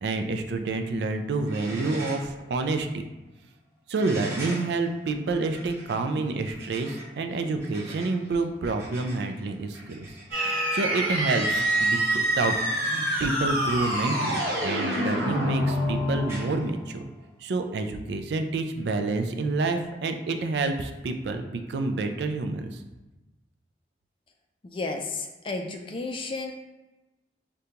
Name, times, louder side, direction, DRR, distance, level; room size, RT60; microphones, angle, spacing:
voice 1, 0.0-3.0 3.9-10.1 10.4-17.0 17.4-22.8, right 3 dB, 75° right, 6 dB, 0.4 m, -28 dB
sound 1, 1.0-1.1 1.4-2.4 2.7-2.8 4.0-17.4 18.8-18.9, right 1 dB, 15° right, 0.7 m, -43 dB
sound 2, 10.3-16.8, right 1 dB, 55° right, 1.1 m, -26 dB
voice 2, 24.6-26.5, left 3 dB, 30° left, 4 dB, 0.3 m, -32 dB
5.0 x 2.2 x 2.8 m, 1.1 s
head